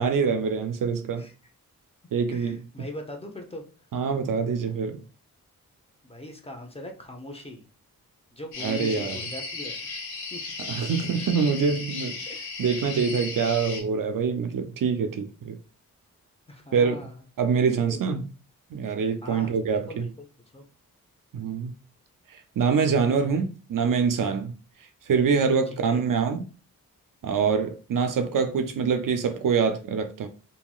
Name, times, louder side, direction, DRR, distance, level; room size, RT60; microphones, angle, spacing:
voice 1, 0.0-1.3 2.1-2.6 3.9-5.0 8.6-9.2 10.7-12.2 12.6-15.6 16.7-17.0 17.4-18.3 18.7-20.1 21.3-21.7 22.3-24.5 24.8-26.4 27.2-30.3, right 5 dB, 60° right, 0.5 m, -25 dB
voice 2, 2.3-3.6 6.0-7.7 8.3-9.7 10.3-10.4 12.2-12.4 16.5-17.2 17.9-18.2 19.2-20.3 20.5-20.6 25.8-26.0, left 1 dB, 15° left, 0.8 m, -40 dB
sound 1, 8.5-13.8, left 3 dB, 90° left, 0.8 m, -35 dB
2.9 x 2.8 x 2.3 m
cardioid pair, 45°, 36 cm